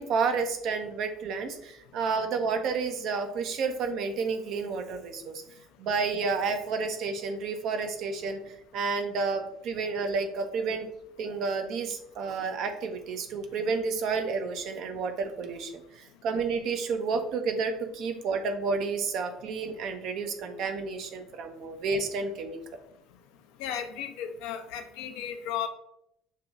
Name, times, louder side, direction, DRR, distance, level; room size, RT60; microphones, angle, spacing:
voice 1, 0.0-5.4 5.8-10.9 11.2-22.6, right 4 dB, 55° right, 6 dB, 0.6 m, -30 dB
voice 2, 23.6-25.7, left 9 dB, 65° left, 6 dB, 0.5 m, -34 dB
6.5 x 2.9 x 2.4 m, 0.78 s
hypercardioid pair, 60°, 0 cm